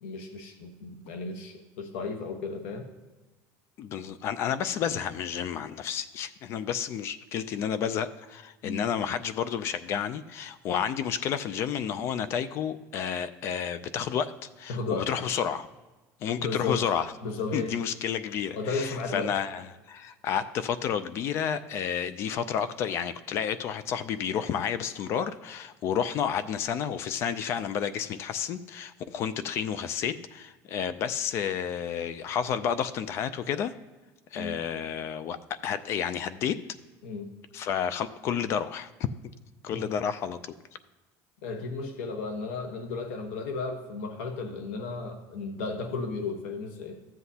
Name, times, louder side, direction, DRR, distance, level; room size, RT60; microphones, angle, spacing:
voice 1, 0.0-2.9 8.6-8.8 14.7-15.1 16.4-16.9 17.2-17.8 18.6-19.3 34.4-34.6 37.0-37.3 39.7-40.0 41.4-46.9, left 4 dB, 90° left, 5 dB, 1.1 m, -34 dB
voice 2, 3.8-15.7 16.2-17.1 17.5-33.7 34.3-35.4 35.6-36.6 37.5-38.9 39.6-40.4, left 8 dB, 35° left, 14 dB, 0.3 m, -31 dB
14.0 x 7.8 x 2.8 m, 1.2 s
cardioid pair, 175°, 7 cm